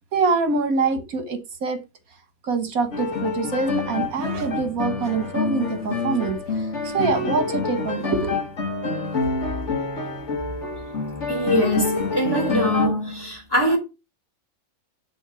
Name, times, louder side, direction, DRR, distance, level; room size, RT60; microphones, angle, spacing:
voice 1, 0.1-1.8 2.4-8.4, right 4 dB, 75° right, 1.8 m, -25 dB
sound 1, 2.9-12.9, left 4 dB, 50° left, 2.0 m, -27 dB
voice 2, 11.3-13.8, equal, 15° left, 2.6 m, -22 dB
10.0 x 3.9 x 6.2 m
omnidirectional pair, 1.5 m